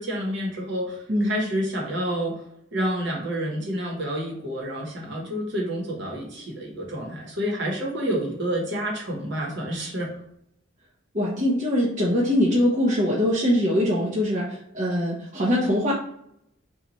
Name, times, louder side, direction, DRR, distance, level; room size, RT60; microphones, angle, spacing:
voice 1, 0.0-2.4 2.7-10.1, equal, 60° right, -1 dB, 1.0 m, -29 dB
voice 2, 11.1-15.9, left 1 dB, 35° right, -5 dB, 0.6 m, -22 dB
3.0 x 2.3 x 3.8 m, 0.77 s
head